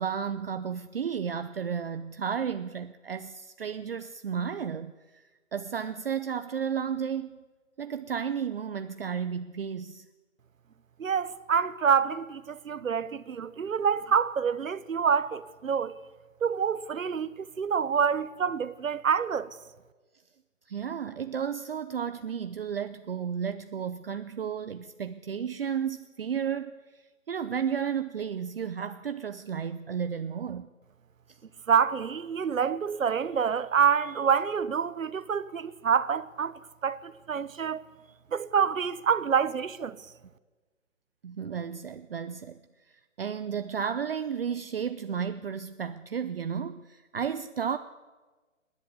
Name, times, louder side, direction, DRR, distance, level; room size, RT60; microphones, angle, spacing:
voice 1, 0.0-5.2 5.5-7.4 7.8-10.1 20.7-30.7 31.3-31.4 41.2-42.6 42.9-47.8, right 7 dB, 45° right, 0.7 m, -33 dB
voice 2, 11.0-15.9 16.4-19.5 31.7-37.8 38.3-40.0, right 7 dB, 75° right, 1.2 m, -27 dB
28.5 x 11.0 x 8.3 m
hypercardioid pair, 160°, 40 cm